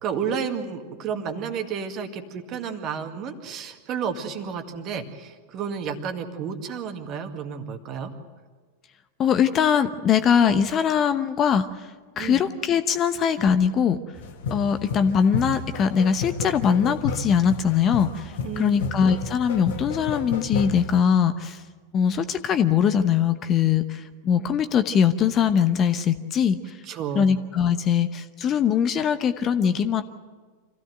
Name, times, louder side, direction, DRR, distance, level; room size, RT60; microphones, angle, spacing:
voice 1, 0.0-8.1 12.2-12.4 18.4-18.8 26.8-27.3, right 6 dB, 35° right, 6 dB, 2.1 m, -31 dB
voice 2, 9.2-11.9 12.2-14.0 14.5-21.6 21.9-26.8 27.1-30.0, left 7 dB, 30° left, 11 dB, 0.9 m, -22 dB
sound 1, 14.1-21.0, left 3 dB, 55° left, 1.9 m, -32 dB
26.0 x 16.0 x 7.9 m, 1.5 s
figure-of-eight pair, 90°, 0 cm